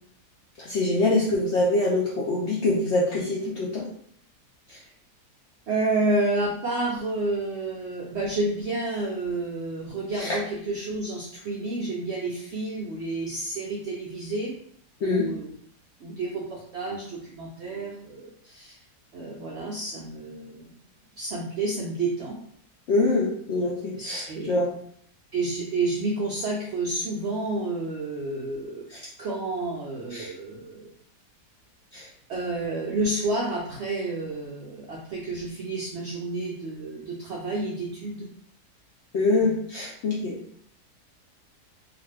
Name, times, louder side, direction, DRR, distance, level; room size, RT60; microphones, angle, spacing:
voice 1, 0.6-3.9 4.7-4.8 10.1-10.4 15.0-15.3 22.9-24.7 28.9-29.1 30.1-30.3 31.9-32.1 39.1-40.4, left 2 dB, 85° left, -4 dB, 0.6 m, -25 dB
voice 2, 5.7-14.5 15.0-15.5 16.0-18.8 19.1-20.7 21.2-22.4 24.0-24.5 25.3-28.9 29.2-30.9 32.3-38.3 39.4-39.6, right 2 dB, 85° right, -3 dB, 0.6 m, -30 dB
2.5 x 2.4 x 3.2 m, 0.64 s
omnidirectional pair, 1.7 m